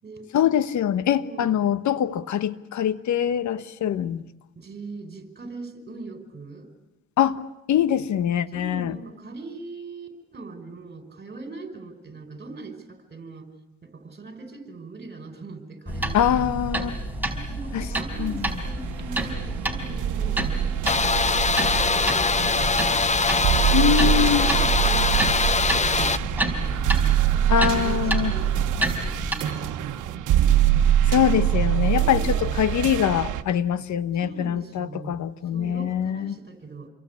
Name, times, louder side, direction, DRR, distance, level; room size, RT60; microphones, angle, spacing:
voice 1, 0.3-4.2 7.2-7.4 7.7-9.0 16.1-16.9 17.7-17.9 18.2-18.3 23.7-24.5 27.5-28.3 31.1-36.3, left 10 dB, 70° left, 1.2 m, -23 dB
voice 2, 1.2-1.6 3.8-4.0 4.6-6.7 8.5-13.5 13.8-21.4 21.8-23.1 24.1-26.9 27.3-30.2 31.9-32.6 34.1-35.2 35.5-36.9, right 3 dB, 35° right, 5.4 m, -40 dB
sound 1, 15.9-29.4, right 1 dB, 5° right, 4.7 m, -29 dB
sound 2, 18.1-33.4, right 11 dB, 85° right, 1.3 m, -25 dB
sound 3, 20.9-26.2, left 4 dB, 25° left, 0.9 m, -22 dB
28.5 x 23.0 x 8.6 m
cardioid pair, 90°, 30 cm